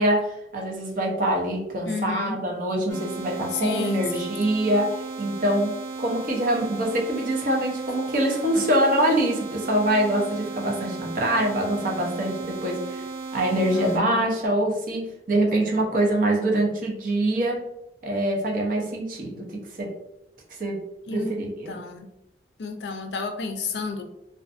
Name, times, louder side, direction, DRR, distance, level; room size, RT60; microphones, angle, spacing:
voice 1, 0.0-13.0 13.3-17.6 18.0-19.9 20.6-20.8 21.1-21.8, right 1 dB, 50° right, -1 dB, 0.6 m, -24 dB
voice 2, 1.8-2.4 3.5-4.4 13.7-14.2 21.1-21.3 21.7-22.1 22.6-24.0, left 4 dB, 70° left, 5 dB, 0.4 m, -31 dB
sound 1, 2.9-14.0, right 4 dB, 75° right, 1.0 m, -35 dB
2.5 x 2.4 x 2.4 m, 0.87 s
head